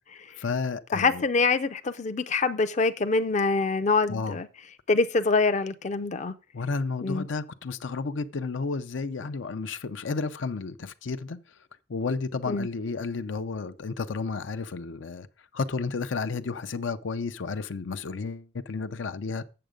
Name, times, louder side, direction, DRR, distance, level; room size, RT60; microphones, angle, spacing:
voice 1, 0.4-1.2 4.1-4.4 6.5-11.4 11.9-15.3 15.5-19.4, left 4 dB, 85° left, 0.6 m, -32 dB
voice 2, 0.9-4.5 4.9-6.3 7.0-7.3 12.5-12.7, left 3 dB, 40° left, 0.5 m, -25 dB
7.8 x 6.9 x 5.1 m
head